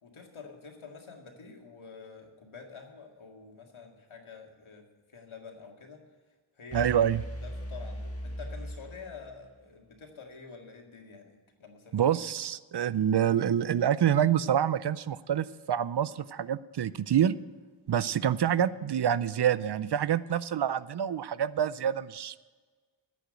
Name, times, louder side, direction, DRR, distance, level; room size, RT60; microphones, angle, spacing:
voice 1, 0.0-6.0 6.6-6.9 7.4-12.0, left 5 dB, 80° left, 2 dB, 2.1 m, -48 dB
sound 1, 6.7-9.6, equal, 30° left, 1.8 m, -39 dB
voice 2, 6.7-7.2 11.9-17.4 17.9-22.4, right 9 dB, 55° right, 17 dB, 0.5 m, -27 dB
10.0 x 8.5 x 7.7 m, 1.4 s
wide cardioid pair, 85°, 48 cm